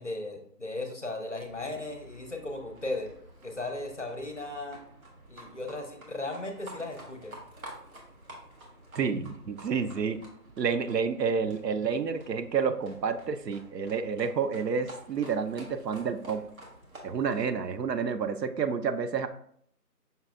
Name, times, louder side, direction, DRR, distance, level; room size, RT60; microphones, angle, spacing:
voice 1, 0.0-3.1 3.4-4.8 5.3-7.4, left 2 dB, 50° left, 4 dB, 0.6 m, -36 dB
Livestock farm animals working animals, 1.4-17.5, right 1 dB, 55° right, 1.3 m, -50 dB
voice 2, 8.9-10.2 10.6-16.4 17.0-19.3, right 6 dB, 80° right, 10 dB, 0.6 m, -29 dB
5.6 x 3.3 x 2.4 m, 0.65 s
figure-of-eight pair, 175°, 49 cm